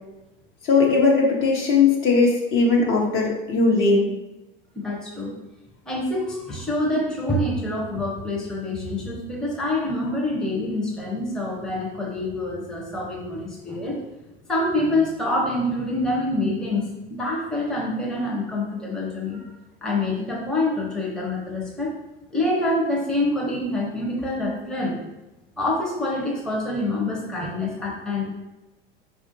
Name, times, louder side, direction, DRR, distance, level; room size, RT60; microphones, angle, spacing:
voice 1, 0.6-4.1, left 4 dB, 45° left, -1 dB, 0.9 m, -19 dB
voice 2, 4.7-5.3 5.9-14.0 14.5-19.5 19.8-21.9 22.3-24.9 25.6-28.3, left 1 dB, ahead, -3 dB, 0.7 m, -26 dB
4.3 x 2.4 x 2.6 m, 0.98 s
hypercardioid pair, 80°, 29 cm